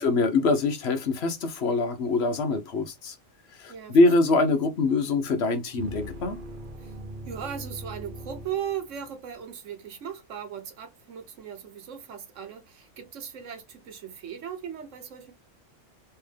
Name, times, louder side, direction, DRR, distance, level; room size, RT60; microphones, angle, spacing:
voice 1, 0.0-3.2 3.6-6.4, left 3 dB, 65° left, 1.0 m, -24 dB
sound 1, 5.8-9.2, equal, 55° right, 0.7 m, -40 dB
voice 2, 7.2-15.3, right 8 dB, 80° right, 1.3 m, -38 dB
3.4 x 2.7 x 3.2 m
omnidirectional pair, 1.3 m